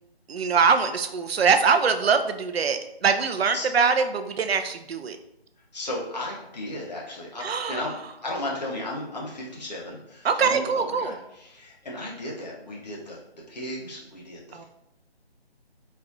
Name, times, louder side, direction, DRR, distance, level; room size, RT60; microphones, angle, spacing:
voice 1, 0.3-5.2 7.4-7.8 10.2-11.1 14.5-14.6, right 5 dB, 70° right, 8 dB, 0.5 m, -23 dB
voice 2, 5.7-7.9 8.2-13.2 13.5-14.6, left 1 dB, 40° left, -3 dB, 0.9 m, -35 dB
4.1 x 2.4 x 2.7 m, 0.84 s
figure-of-eight pair, 160°, 32 cm